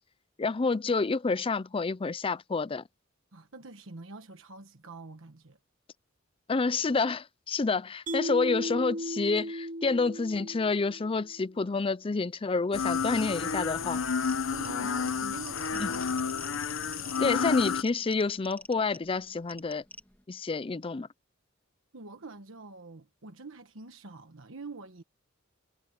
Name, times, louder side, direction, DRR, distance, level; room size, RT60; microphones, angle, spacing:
voice 1, 0.4-2.8 6.5-14.0 15.8-15.9 17.2-19.8 20.3-21.1, left 4 dB, 25° left, 0.5 m, -29 dB
voice 2, 3.3-5.6 14.5-16.0 17.3-17.4 21.9-25.0, right 3 dB, 75° right, 1.3 m, -46 dB
Mallet percussion, 8.1-11.3, equal, 40° right, 0.9 m, -36 dB
sound 1, 12.7-17.8, left 5 dB, 70° left, 0.9 m, -30 dB
sound 2, 14.2-20.2, left 2 dB, 10° left, 2.0 m, -50 dB
head